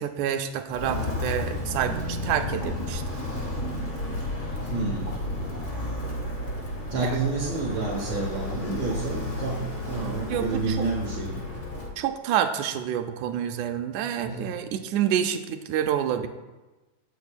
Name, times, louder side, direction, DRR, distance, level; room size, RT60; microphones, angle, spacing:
voice 1, 0.0-3.0 7.0-7.1 10.3-10.9 12.0-16.3, right 9 dB, 85° right, 7 dB, 2.0 m, -28 dB
Walk footsteps, 0.7-12.0, left 2 dB, 40° left, 0.7 m, -32 dB
voice 2, 4.7-5.2 6.9-9.6 9.9-11.4 14.2-14.5, right 4 dB, 65° right, -1 dB, 2.1 m, -29 dB
16.5 x 7.1 x 2.3 m, 1.1 s
omnidirectional pair, 3.5 m